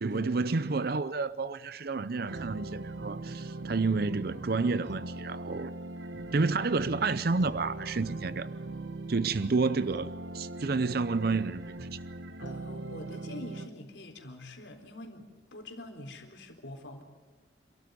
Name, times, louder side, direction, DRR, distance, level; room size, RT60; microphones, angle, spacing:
voice 1, 0.0-5.7 6.3-8.5 9.1-10.1 10.3-11.7, right 4 dB, 55° right, 0.6 m, -30 dB
sound 1, 2.2-13.7, right 2 dB, 90° right, 1.2 m, -40 dB
voice 2, 12.4-17.0, left 1 dB, 85° left, 3.9 m, -45 dB
28.0 x 13.5 x 9.2 m
head